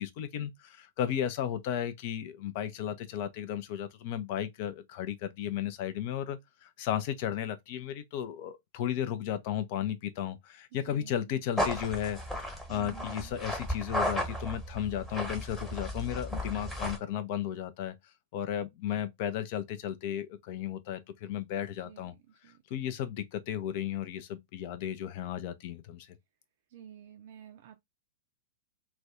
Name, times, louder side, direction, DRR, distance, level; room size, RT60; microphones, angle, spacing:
voice 1, 0.0-12.2 12.5-17.9 18.3-22.1 22.7-26.2, left 10 dB, 45° left, 0.5 m, -34 dB
voice 2, 10.9-11.3 12.7-13.3 21.8-22.1 22.4-22.9 26.7-27.8, right 10 dB, 50° right, 0.4 m, -50 dB
sound 1, 11.6-17.0, equal, 5° left, 1.1 m, -34 dB
2.4 x 2.2 x 3.5 m
figure-of-eight pair, 100°, 0 cm